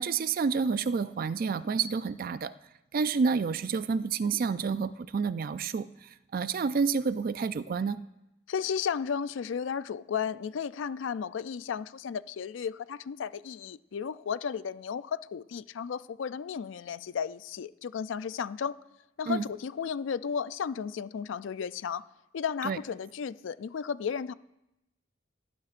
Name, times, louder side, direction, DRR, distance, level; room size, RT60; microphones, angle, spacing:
voice 1, 0.0-2.5 2.9-5.9 6.3-8.0 19.3-19.4 22.6-22.8, right 5 dB, 45° right, 15 dB, 0.4 m, -29 dB
voice 2, 8.5-18.7 19.2-22.0 22.3-24.3, left 7 dB, 65° left, 16 dB, 0.4 m, -34 dB
17.5 x 11.5 x 2.5 m, 0.90 s
head